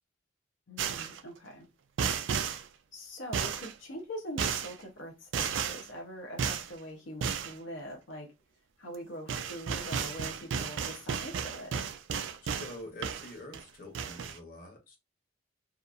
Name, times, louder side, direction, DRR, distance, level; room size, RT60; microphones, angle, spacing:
voice 1, 0.7-1.7 2.3-2.6 2.9-8.3 8.8-11.9, equal, 85° left, 0.7 m, -43 dB
sound 1, 0.8-1.2 2.0-2.6 3.3-3.7 4.4-4.7 5.3-5.9 6.4-6.7 7.2-7.5 8.9-9.0 9.3-12.7 13.0-13.6 13.9-14.4, right 7 dB, 85° right, 0.4 m, -33 dB
voice 2, 12.4-15.0, left 1 dB, 50° left, 1.0 m, -46 dB
2.8 x 2.3 x 2.3 m
head